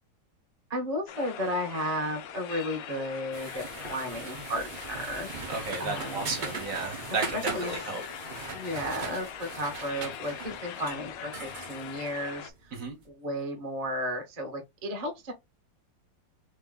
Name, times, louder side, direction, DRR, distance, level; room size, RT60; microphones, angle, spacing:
voice 1, 0.7-6.3 7.3-7.7 8.5-12.5 13.1-15.3, equal, 30° right, 0.7 m, -34 dB
sound 1, 1.1-12.5, left 9 dB, 75° left, 0.8 m, -42 dB
sound 2, 3.3-12.9, right 4 dB, 70° right, 0.4 m, -40 dB
voice 2, 5.5-8.0 12.7-13.0, right 4 dB, 50° right, 1.2 m, -33 dB
3.4 x 2.9 x 3.6 m
omnidirectional pair, 2.1 m